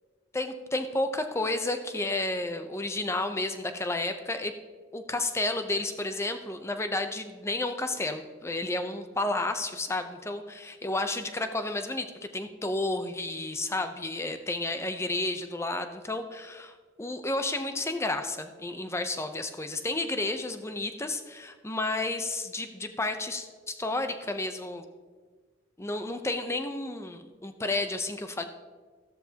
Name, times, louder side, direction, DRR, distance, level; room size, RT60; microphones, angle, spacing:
voice 1, 0.3-4.5 4.9-12.1 12.3-24.8 25.8-28.4, left 2 dB, 15° left, 7 dB, 0.6 m, -31 dB
14.0 x 13.0 x 2.9 m, 1.5 s
head